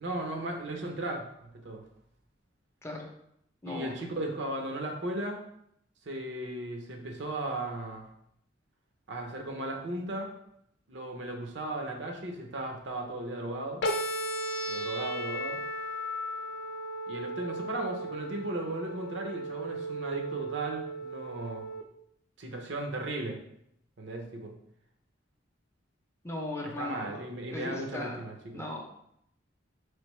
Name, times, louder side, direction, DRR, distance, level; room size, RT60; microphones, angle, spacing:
voice 1, 0.0-1.8 3.6-5.4 6.1-8.1 9.1-10.3 10.9-13.8 14.7-15.6 17.1-21.7 22.4-23.4 24.0-24.6 26.6-28.6, right 1 dB, 70° right, 3 dB, 0.7 m, -36 dB
voice 2, 3.6-4.1 26.2-27.2 27.5-28.2 28.5-28.8, left 1 dB, 15° left, 1 dB, 0.5 m, -38 dB
sound 1, 13.8-21.8, right 1 dB, 65° left, 0.6 m, -35 dB
3.9 x 3.3 x 3.1 m, 0.73 s
head